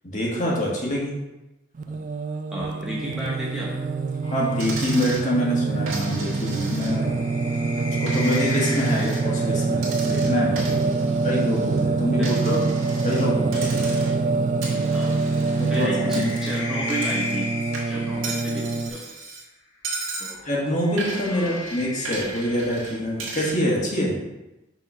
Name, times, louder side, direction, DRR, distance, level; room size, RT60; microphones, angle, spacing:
voice 1, 0.1-1.1 4.3-7.3 8.0-10.9 11.2-12.6 13.0-13.8 15.6-15.9 16.2-16.3 20.5-24.2, equal, 35° left, -4 dB, 1.6 m, -25 dB
Singing, 1.8-18.9, right 3 dB, 40° right, 0.3 m, -25 dB
voice 2, 2.5-3.7 9.0-9.1 11.0-11.2 12.2-12.3 14.9-15.1 15.7-17.5 17.9-18.7 18.9-19.0 20.2-20.5 21.3-21.6, right 1 dB, ahead, -6 dB, 0.7 m, -32 dB
sound 1, 4.2-9.8 11.1-14.1 15.5-18.9 20.2-23.1, left 2 dB, 55° left, 1.3 m, -37 dB
Coin (dropping), 4.6-5.3 5.9-7.2 7.5-9.2 9.8-11.8 12.2-13.3 13.5-14.3 14.6-17.5 17.7-19.4 19.8-20.4 21.0-23.6, right 3 dB, 80° right, 1.8 m, -36 dB
6.0 x 3.6 x 5.4 m, 1.0 s
head